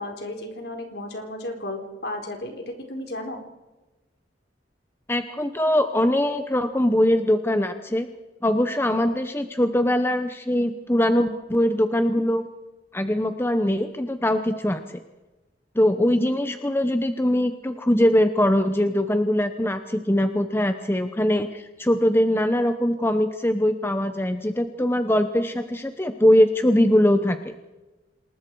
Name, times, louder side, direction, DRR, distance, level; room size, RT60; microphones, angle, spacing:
voice 1, 0.0-3.4, left 1 dB, 60° left, 3 dB, 4.2 m, -34 dB
voice 2, 5.1-8.1 8.4-12.5 12.9-15.0 15.7-27.5, left 1 dB, 15° left, 8 dB, 0.9 m, -22 dB
27.0 x 20.5 x 4.8 m, 1.1 s
head